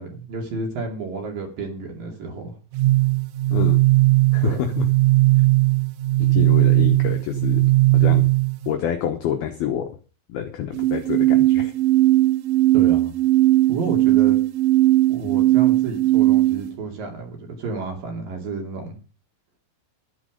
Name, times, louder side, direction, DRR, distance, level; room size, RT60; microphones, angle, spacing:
voice 1, 0.0-2.6 4.4-4.7 12.7-13.1 13.7-14.4 15.1-18.9, right 4 dB, 50° right, 2 dB, 3.8 m, -31 dB
sound 1, 2.7-8.7 10.7-16.7, right 18 dB, 75° right, 2.9 m, -18 dB
voice 2, 4.3-4.9 6.2-7.6 7.9-8.3 8.7-9.9 10.3-11.7, left 9 dB, 75° left, 5 dB, 2.3 m, -27 dB
12.5 x 10.5 x 5.1 m, 0.36 s
omnidirectional pair, 5.8 m